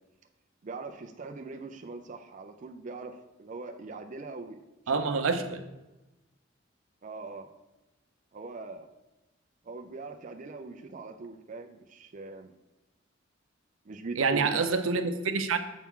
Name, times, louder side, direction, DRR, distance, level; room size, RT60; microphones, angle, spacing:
voice 1, 0.6-4.6 4.9-5.3 7.0-7.5 8.3-8.9 9.6-12.5 13.8-14.7, right 3 dB, 40° right, 4 dB, 0.4 m, -41 dB
voice 2, 4.9-5.6 14.2-15.6, right 4 dB, 85° right, 7 dB, 0.6 m, -27 dB
7.2 x 5.8 x 3.7 m, 1.0 s
head